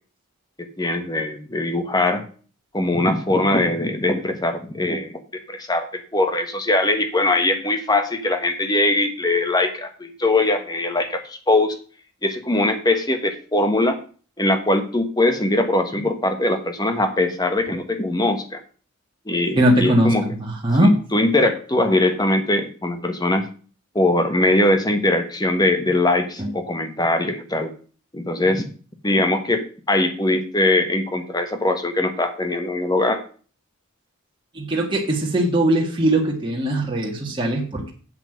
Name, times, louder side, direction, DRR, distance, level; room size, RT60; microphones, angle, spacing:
voice 1, 0.6-2.2 2.7-5.1 5.5-5.9 6.1-11.7 12.2-14.0 14.4-18.6 19.3-20.3 20.8-23.4 23.9-27.7 28.1-28.7 29.0-33.2, left 2 dB, 20° left, 7 dB, 1.3 m, -21 dB
voice 2, 19.5-20.9 26.4-26.5 34.6-37.9, right 1 dB, 25° right, -2 dB, 1.9 m, -20 dB
7.9 x 5.8 x 7.9 m, 0.39 s
head